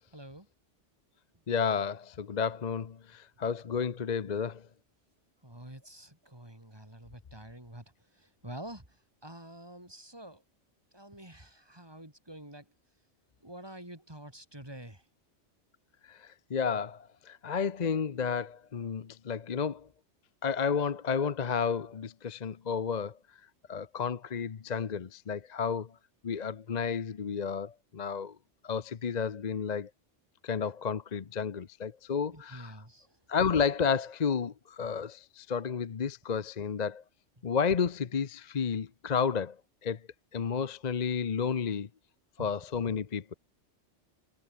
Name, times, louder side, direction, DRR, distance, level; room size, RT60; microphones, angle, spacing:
voice 1, 0.1-0.5 3.4-3.7 5.4-7.8 8.2-8.8 9.2-10.4 10.9-12.6 13.4-15.0 32.3-33.1 42.4-42.5, right 1 dB, 20° right, 4.6 m, -47 dB
voice 2, 1.5-4.7 16.1-19.9 20.4-23.2 23.7-25.9 26.2-28.4 28.6-29.9 30.4-32.8 33.3-37.0 37.4-39.6 39.8-40.0 40.3-41.9 42.4-43.3, left 6 dB, 40° left, 0.8 m, -31 dB
omnidirectional pair, 1.2 m